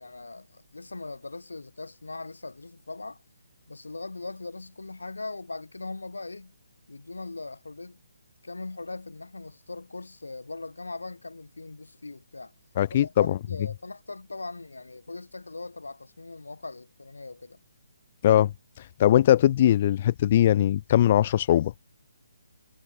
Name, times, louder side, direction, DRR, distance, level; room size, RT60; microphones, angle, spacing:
voice 1, 0.0-3.2 3.7-6.5 6.9-8.0 8.4-12.5 12.9-17.6, left 3 dB, 80° left, 5.7 m, -40 dB
voice 2, 12.8-13.4 18.2-18.5 18.8-21.7, left 11 dB, 40° left, 1.0 m, -21 dB
figure-of-eight pair, 140°, 0 cm